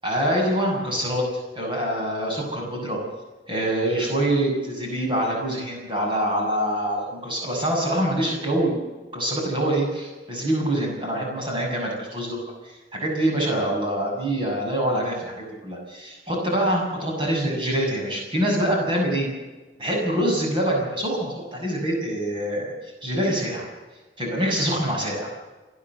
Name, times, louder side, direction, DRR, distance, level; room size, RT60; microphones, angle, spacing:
voice 1, 0.0-1.2 1.6-3.0 3.5-8.8 9.1-12.4 12.6-19.3 19.8-22.7 23.0-23.7 24.2-25.3, right 1 dB, 30° right, -1 dB, 6.9 m, -25 dB
29.0 x 11.0 x 8.1 m, 1.2 s
head